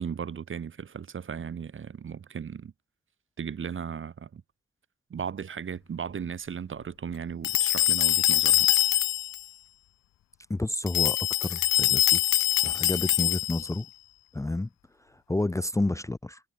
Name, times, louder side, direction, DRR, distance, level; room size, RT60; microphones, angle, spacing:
voice 1, 0.0-2.7 3.4-4.4 5.1-8.7, right 7 dB, 40° right, 1.2 m, -36 dB
sound 1, 7.4-9.4 10.9-13.8, left 14 dB, 60° left, 0.6 m, -24 dB
voice 2, 10.5-12.2 12.6-13.9 14.3-14.7 15.1-16.4, left 2 dB, 10° left, 0.8 m, -30 dB
supercardioid pair, 60°, 30 cm